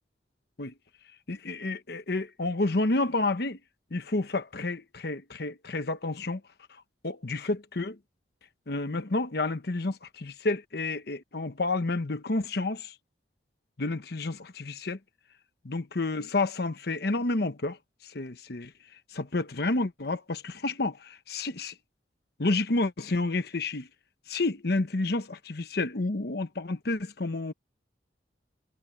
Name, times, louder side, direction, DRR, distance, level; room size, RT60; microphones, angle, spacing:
voice 1, 1.3-3.6 3.9-6.4 7.0-8.0 8.7-12.9 13.8-15.0 15.7-17.8 18.0-18.7 19.1-21.7 22.4-23.9 24.3-27.5, left 2 dB, 60° left, 1.0 m, -30 dB
head